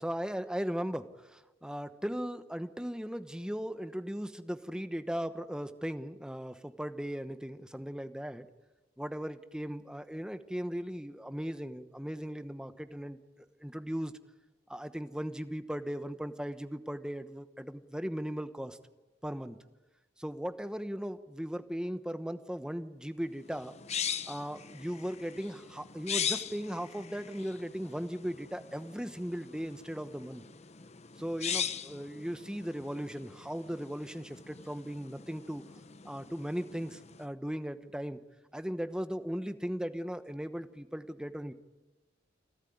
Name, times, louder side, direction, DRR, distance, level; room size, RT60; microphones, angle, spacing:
voice 1, 0.0-8.5 9.0-14.1 14.7-18.8 19.2-19.6 20.2-23.7 24.3-30.4 31.2-35.6 36.0-38.2 38.5-41.5, equal, 5° right, 10 dB, 1.0 m, -37 dB
sound 1, 23.4-37.3, left 8 dB, 35° left, 0.8 m, -40 dB
29.0 x 12.5 x 9.4 m, 1.1 s
head